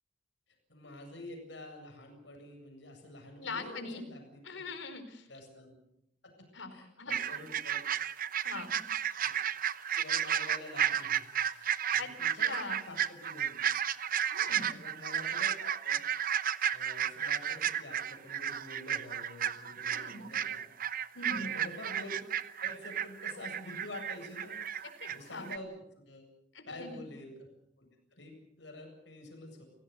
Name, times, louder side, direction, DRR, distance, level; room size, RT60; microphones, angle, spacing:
voice 1, 0.7-4.6 5.3-5.8 6.7-7.8 9.2-9.3 9.9-11.2 11.5-13.5 14.5-16.0 16.7-20.7 21.3-22.3 22.6-25.7 26.1-26.2 26.7-27.5 27.8-27.9 28.1-29.7, left 1 dB, 70° left, 3 dB, 7.9 m, -48 dB
voice 2, 3.4-4.0 4.4-5.3 6.5-7.1 8.4-8.8 12.0-12.9 14.3-14.7 19.9-20.3 21.1-21.6 25.0-25.5 26.5-27.0, left 3 dB, 85° left, 8 dB, 4.5 m, -42 dB
sound 1, 7.1-25.2 25.4-25.6, right 9 dB, 50° right, 0.9 m, -33 dB
30.0 x 17.5 x 7.0 m, 0.76 s
head